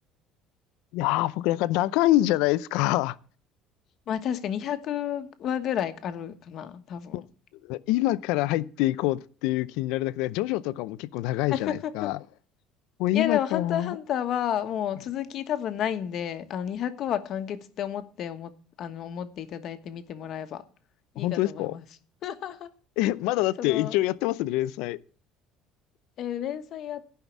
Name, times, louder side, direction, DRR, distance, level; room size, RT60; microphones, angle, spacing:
voice 1, 0.9-3.2 7.1-7.2 7.6-12.2 13.0-14.0 21.2-21.7 23.0-25.0, left 16 dB, 80° left, 0.5 m, -26 dB
voice 2, 4.1-7.2 11.5-12.1 13.1-18.5 18.8-20.6 21.1-21.8 22.2-22.7 23.6-24.0 26.2-27.0, left 10 dB, 50° left, 1.2 m, -31 dB
14.5 x 5.7 x 7.2 m
cardioid pair, 145°, 0 cm